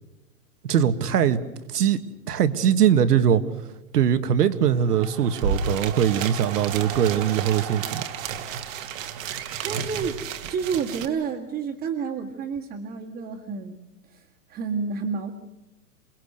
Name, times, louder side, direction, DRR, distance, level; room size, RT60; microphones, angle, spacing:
voice 1, 0.6-1.4 1.7-2.0 2.3-3.4 3.9-8.1, right 9 dB, 75° right, 10 dB, 1.9 m, -21 dB
sound 1, 4.5-11.4, right 12 dB, 40° right, 2.1 m, -40 dB
sound 2, 5.0-5.1 5.3-11.1, right 6 dB, 55° right, 1.9 m, -32 dB
voice 2, 9.6-10.2 10.5-13.8 14.1-15.3, right 6 dB, 20° right, -3 dB, 1.9 m, -30 dB
28.0 x 20.5 x 6.8 m, 1.0 s
hypercardioid pair, 155°, 47 cm